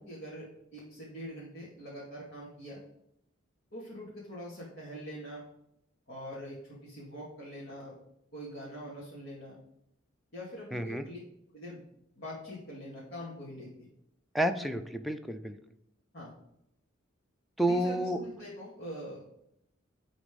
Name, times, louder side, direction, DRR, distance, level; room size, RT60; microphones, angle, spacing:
voice 1, 0.0-2.8 3.7-5.4 6.1-8.0 8.3-9.6 10.3-11.2 11.5-11.8 12.2-13.9 16.1-16.3 17.6-19.3, equal, 55° left, -7 dB, 2.4 m, -43 dB
voice 2, 10.7-11.0 14.3-15.6 17.6-18.2, right 1 dB, ahead, 6 dB, 0.5 m, -30 dB
10.5 x 4.1 x 5.3 m, 0.77 s
head